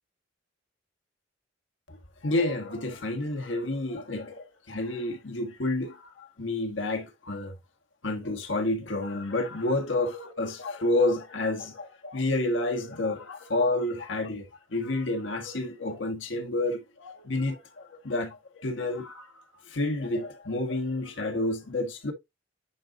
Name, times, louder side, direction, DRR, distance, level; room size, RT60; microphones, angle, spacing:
voice 1, 2.2-7.6 8.0-22.1, left 2 dB, 80° left, 1.5 m, -30 dB
9.6 x 3.9 x 2.5 m
head